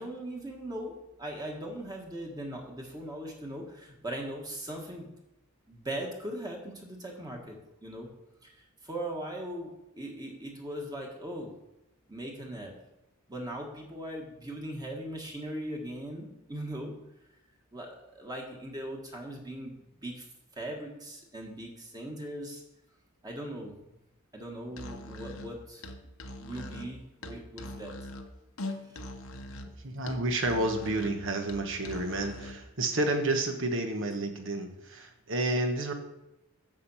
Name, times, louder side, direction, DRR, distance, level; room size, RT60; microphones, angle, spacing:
voice 1, 0.0-5.1 5.7-8.1 8.4-11.5 12.1-12.7 13.3-16.9 17.7-20.2 20.5-22.6 23.2-23.7 24.3-25.8 26.4-27.9 28.7-28.9, right 1 dB, 20° right, 0 dB, 1.6 m, -39 dB
Musical instrument, 24.7-32.7, left 1 dB, 75° left, 1.0 m, -42 dB
voice 2, 29.8-35.9, right 2 dB, 60° right, 5 dB, 1.3 m, -30 dB
7.4 x 7.3 x 5.7 m, 0.93 s
head